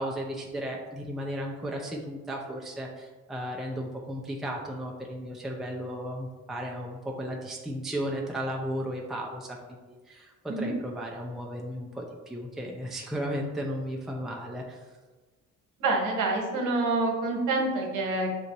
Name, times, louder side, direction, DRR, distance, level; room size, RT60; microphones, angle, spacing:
voice 1, 0.0-14.8, equal, ahead, -1 dB, 0.5 m, -35 dB
voice 2, 15.8-18.3, right 2 dB, 85° right, 1 dB, 1.0 m, -27 dB
6.6 x 2.5 x 2.9 m, 1.3 s
cardioid pair, 90°, 30 cm